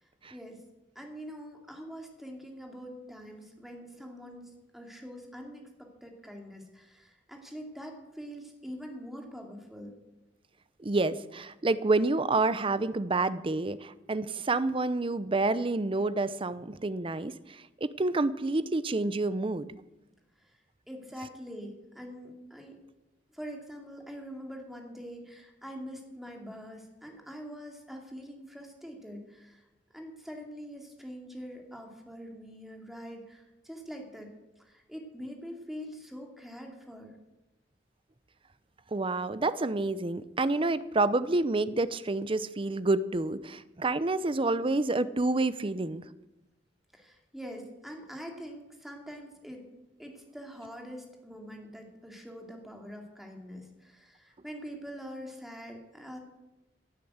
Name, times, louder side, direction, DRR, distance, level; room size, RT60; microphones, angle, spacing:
voice 1, 0.3-0.6 0.9-9.9 20.4-20.6 20.9-22.8 23.3-29.6 29.9-37.2 46.9-49.7 50.0-56.2, equal, ahead, 2 dB, 2.6 m, -44 dB
voice 2, 10.8-19.7 38.9-46.0, right 2 dB, 30° right, 15 dB, 0.6 m, -28 dB
17.0 x 9.1 x 8.0 m, 0.99 s
head